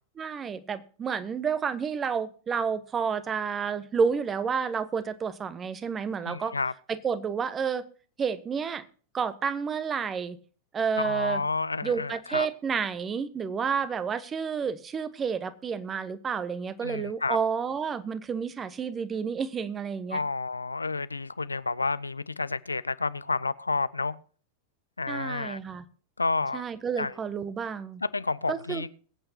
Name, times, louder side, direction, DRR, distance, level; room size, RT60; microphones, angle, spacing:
voice 1, 0.2-6.5 6.9-7.8 8.2-8.9 9.1-10.4 10.7-11.4 11.8-20.2 25.1-25.8 26.5-28.0 28.5-28.8, right 6 dB, 20° right, 1.1 m, -30 dB
voice 2, 6.2-6.7 11.0-12.5 16.8-17.4 20.1-24.2 25.0-25.6 26.2-26.6 27.0-27.1 28.0-28.9, left 3 dB, 80° left, 0.5 m, -30 dB
22.0 x 8.9 x 2.8 m
figure-of-eight pair, 90°, 0 cm